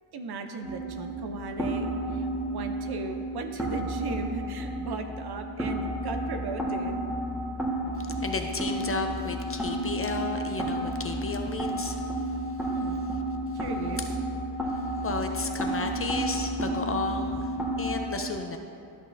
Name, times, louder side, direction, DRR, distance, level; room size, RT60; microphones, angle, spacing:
voice 1, 0.1-7.0 12.7-13.0 13.5-14.1, right 3 dB, 65° right, 6 dB, 0.7 m, -37 dB
sound 1, 0.6-18.0, right 1 dB, 5° right, 1.4 m, -31 dB
voice 2, 8.2-12.0 14.7-17.5 17.8-18.6, left 3 dB, 35° left, 4 dB, 0.5 m, -33 dB
12.5 x 6.2 x 2.6 m, 2.5 s
cardioid pair, 105°, 41 cm